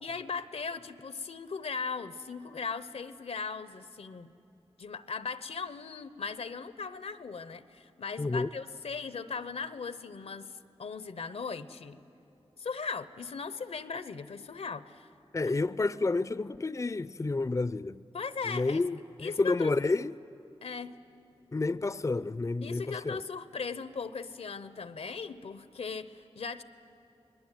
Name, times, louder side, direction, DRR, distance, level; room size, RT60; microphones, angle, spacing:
voice 1, 0.0-4.4 4.8-12.0 12.6-15.1 18.1-18.8 19.2-20.1 20.6-21.0 22.6-26.6, left 5 dB, 80° left, 0.8 m, -38 dB
voice 2, 8.2-8.5 15.3-18.0 18.5-19.0 19.2-20.1 21.5-23.2, left 3 dB, 30° left, 0.5 m, -30 dB
26.5 x 20.5 x 9.1 m
cardioid pair, 40°, 10 cm